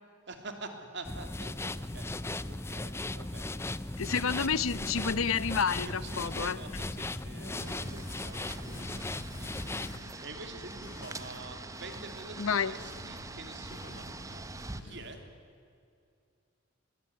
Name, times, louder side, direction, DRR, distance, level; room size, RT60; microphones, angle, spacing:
voice 1, 0.3-3.6 4.1-4.5 5.2-5.3 5.8-14.4 14.8-15.2, right 2 dB, 55° right, 5 dB, 3.0 m, -47 dB
sound 1, 1.0-10.0, left 2 dB, 10° left, 0.5 m, -37 dB
sound 2, 3.9-15.2, left 1 dB, 55° left, 5.0 m, -50 dB
voice 2, 4.0-6.6 12.4-12.7, left 6 dB, 85° left, 16 dB, 0.8 m, -29 dB
sound 3, 7.5-14.8, right 2 dB, 15° right, 0.8 m, -44 dB
22.0 x 21.0 x 9.7 m, 2.4 s
head